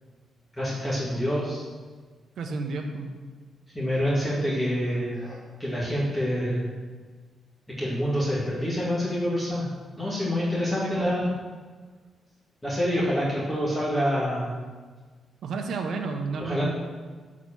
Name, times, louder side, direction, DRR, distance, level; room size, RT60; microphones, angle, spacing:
voice 1, 0.5-1.6 3.7-6.6 7.8-9.7 10.0-11.3 12.6-14.5 16.4-16.7, equal, 15° left, -8 dB, 2.5 m, -27 dB
voice 2, 2.4-3.1 10.8-11.1 15.4-16.8, right 4 dB, 70° right, 2 dB, 1.0 m, -31 dB
8.2 x 4.9 x 7.4 m, 1.4 s
cardioid pair, 115°, 0 cm